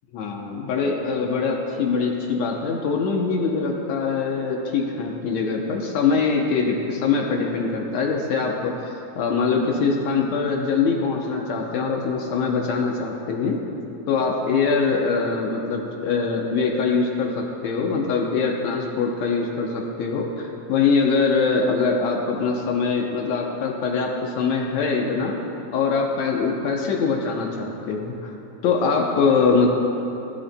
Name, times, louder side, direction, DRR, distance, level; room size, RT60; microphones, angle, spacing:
voice 1, 0.1-13.6 14.1-25.4 25.7-28.3 28.6-29.7, left 4 dB, 70° left, 0 dB, 1.8 m, -23 dB
19.5 x 11.5 x 2.2 m, 3.0 s
omnidirectional pair, 3.8 m